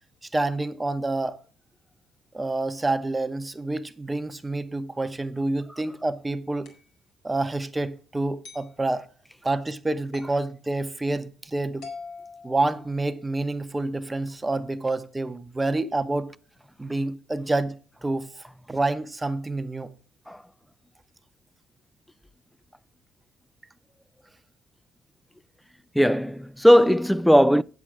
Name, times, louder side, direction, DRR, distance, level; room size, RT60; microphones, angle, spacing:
voice 1, 0.3-1.4 2.3-6.7 7.2-9.1 9.4-11.9 12.4-16.3 16.8-19.9, right 2 dB, 20° right, 0.9 m, -28 dB
sound 1, 6.6-6.9 8.4-8.7 10.1-10.4 11.8-13.2, left 4 dB, 75° left, 2.1 m, -43 dB
voice 2, 26.0-27.6, equal, ahead, 0.3 m, -18 dB
8.1 x 7.5 x 4.9 m
hypercardioid pair, 55°, 0 cm